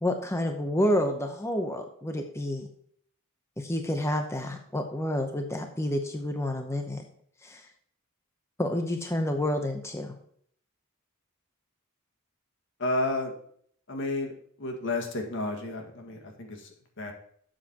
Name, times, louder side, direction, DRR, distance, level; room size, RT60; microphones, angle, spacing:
voice 1, 0.0-2.7 3.6-7.0 7.4-7.6 8.6-10.1, left 1 dB, 15° left, 4 dB, 0.7 m, -29 dB
voice 2, 12.8-13.3 13.9-14.3 14.6-17.1, left 2 dB, 60° left, 2 dB, 1.8 m, -31 dB
12.0 x 7.5 x 2.9 m, 0.63 s
head